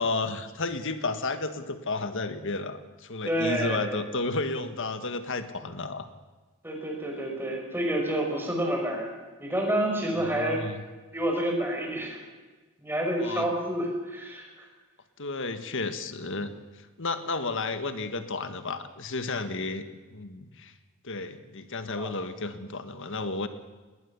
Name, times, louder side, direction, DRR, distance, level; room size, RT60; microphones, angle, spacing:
voice 1, 0.0-6.1 10.1-10.8 13.2-13.5 15.2-16.5 17.0-19.9 20.1-20.7 21.0-23.5, left 3 dB, 60° left, 9 dB, 1.7 m, -32 dB
voice 2, 3.2-4.0 6.6-9.1 9.4-10.6 11.1-12.2 12.8-14.7 22.0-22.1, right 1 dB, 10° right, 1 dB, 5.4 m, -29 dB
20.0 x 20.0 x 7.1 m, 1.3 s
head